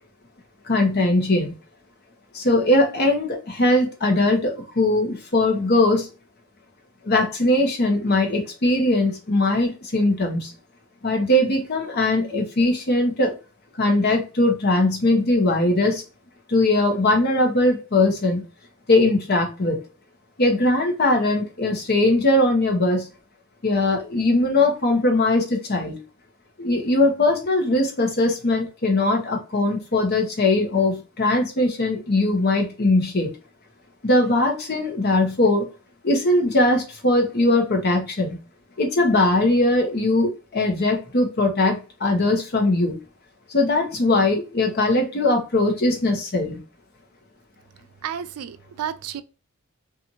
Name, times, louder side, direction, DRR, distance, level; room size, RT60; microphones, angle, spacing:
voice 1, 0.7-1.5 2.3-6.1 7.0-10.5 11.0-13.3 13.8-16.0 16.5-18.4 18.9-19.8 20.4-23.1 23.6-26.0 26.6-33.3 34.0-35.7 36.0-38.4 38.8-43.0 43.5-46.6, left 2 dB, 45° left, 0.8 m, -20 dB
voice 2, 48.0-49.2, right 8 dB, 90° right, 0.4 m, -31 dB
2.6 x 2.5 x 2.7 m
head